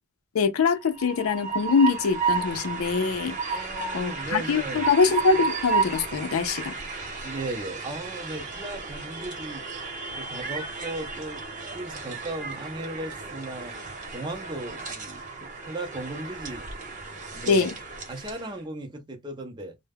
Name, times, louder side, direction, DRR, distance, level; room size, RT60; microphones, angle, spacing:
voice 1, 0.3-3.7 3.9-6.8 17.5-17.8, left 5 dB, 90° left, 0.5 m, -24 dB
Train, 0.7-18.5, right 5 dB, 40° right, 0.9 m, -33 dB
voice 2, 3.5-4.8 7.2-9.6 10.1-11.4 11.7-13.8 14.1-16.7 17.3-17.7 18.1-19.8, right 2 dB, 20° right, 0.5 m, -36 dB
2.2 x 2.1 x 3.3 m
head